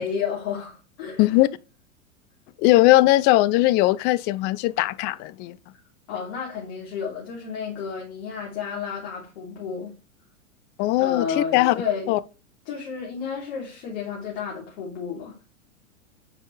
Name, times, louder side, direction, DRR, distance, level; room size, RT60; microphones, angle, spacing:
voice 1, 0.0-1.2 6.1-9.9 11.0-12.1 12.6-15.4, left 6 dB, 55° left, 3.3 m, -31 dB
voice 2, 2.6-5.6 10.8-11.7 12.1-12.2, left 17 dB, 25° left, 0.4 m, -19 dB
9.6 x 4.3 x 3.2 m
hypercardioid pair, 105°, 40 cm